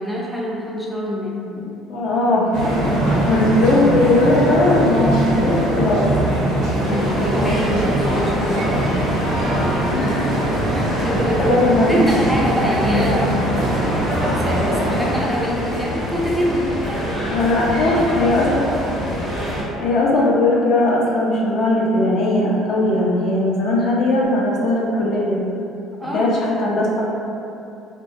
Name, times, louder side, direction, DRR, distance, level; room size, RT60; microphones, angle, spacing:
voice 1, 0.0-1.6 6.7-9.1 9.5-9.8 10.7-11.6 11.9-13.4 14.3-16.7 17.9-18.3 26.0-26.6, equal, 5° right, -3 dB, 0.4 m, -25 dB
voice 2, 1.9-2.5 3.2-6.1 9.9-10.4 11.4-12.0 17.3-18.5 19.8-25.4 26.1-27.0, left 2 dB, 60° left, -4 dB, 0.5 m, -18 dB
sound 1, 2.5-15.1, right 1 dB, 70° right, 0.6 m, -22 dB
sound 2, 6.8-19.6, equal, 45° left, 0.9 m, -26 dB
2.2 x 2.1 x 2.6 m, 2.7 s
supercardioid pair, 85°, 0 cm